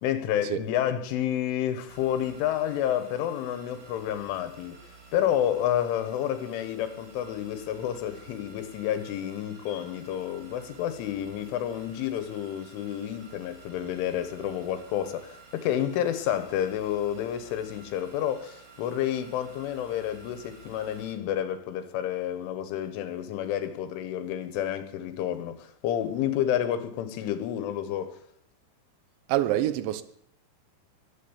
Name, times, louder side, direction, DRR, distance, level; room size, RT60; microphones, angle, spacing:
voice 1, 0.0-4.8 5.1-28.2, left 10 dB, 85° left, 3.8 m, -30 dB
sound 1, 1.9-21.1, right 4 dB, 60° right, 5.1 m, -52 dB
voice 2, 29.3-30.0, right 13 dB, 75° right, 3.2 m, -26 dB
22.5 x 8.9 x 7.2 m
omnidirectional pair, 5.5 m